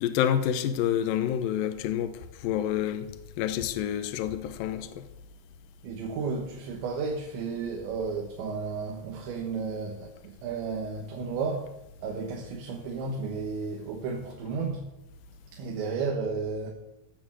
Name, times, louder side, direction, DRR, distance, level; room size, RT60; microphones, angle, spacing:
voice 1, 0.0-3.1 3.4-5.1, left 10 dB, 85° left, 2.0 m, -28 dB
voice 2, 5.8-11.7 12.0-14.9 15.5-16.7, right 4 dB, 75° right, 3.5 m, -33 dB
15.5 x 7.1 x 7.7 m
omnidirectional pair, 5.4 m